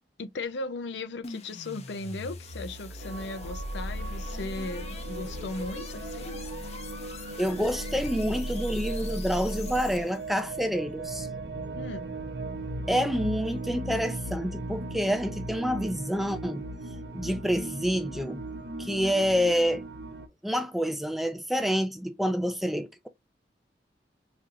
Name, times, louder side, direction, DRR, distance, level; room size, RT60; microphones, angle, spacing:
voice 1, 0.2-6.4 11.7-12.1, left 2 dB, 85° left, 0.5 m, -37 dB
sound 1, 1.2-10.3, left 1 dB, 35° left, 0.7 m, -38 dB
sound 2, 3.0-20.3, right 2 dB, 75° right, 0.8 m, -38 dB
voice 2, 7.4-11.3 12.9-16.7 17.1-18.4 18.8-19.9 20.4-23.1, equal, ahead, 0.4 m, -28 dB
5.0 x 2.9 x 2.4 m
head